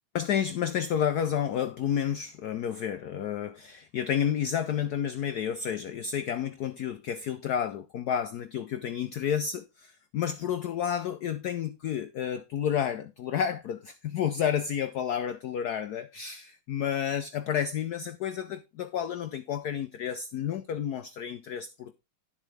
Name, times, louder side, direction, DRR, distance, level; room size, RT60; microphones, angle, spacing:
voice 1, 0.1-21.9, left 9 dB, 90° left, 0.8 m, -30 dB
11.5 x 7.5 x 3.3 m
omnidirectional pair, 2.4 m